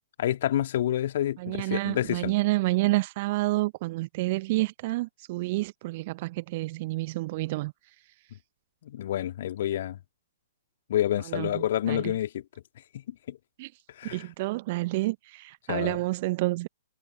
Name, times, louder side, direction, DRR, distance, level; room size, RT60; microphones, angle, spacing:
voice 1, 0.2-2.3 8.8-10.0 10.9-12.4 13.3-13.4 14.0-14.3 15.7-16.0, left 12 dB, 45° left, 2.7 m, -28 dB
voice 2, 1.4-7.7 11.3-12.0 13.6-13.7 14.0-16.7, right 20 dB, 35° right, 1.0 m, -29 dB
figure-of-eight pair, 120°, 0 cm